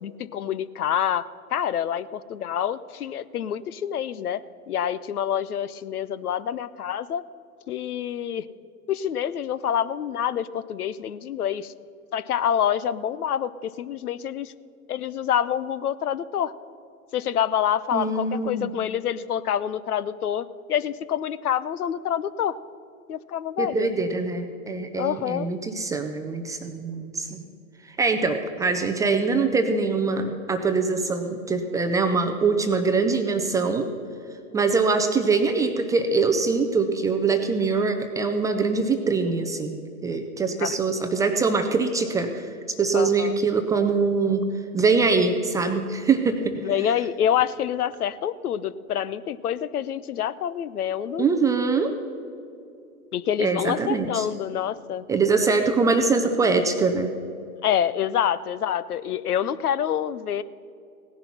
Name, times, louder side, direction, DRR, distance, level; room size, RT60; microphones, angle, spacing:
voice 1, 0.0-4.4 4.7-7.2 7.7-8.4 8.9-11.7 12.1-14.5 14.9-16.5 17.1-22.6 23.1-23.9 25.0-25.5 40.6-40.8 42.9-43.4 46.6-51.3 53.1-55.0 57.6-60.4, left 9 dB, 80° left, 17 dB, 0.7 m, -27 dB
voice 2, 17.9-18.7 23.6-27.5 27.8-33.9 34.5-42.5 42.8-44.4 44.7-46.6 51.2-51.9 53.4-54.3 55.1-57.1, right 4 dB, 10° right, 5 dB, 0.4 m, -23 dB
17.0 x 10.5 x 5.8 m, 2.6 s
hypercardioid pair, 105°, 44 cm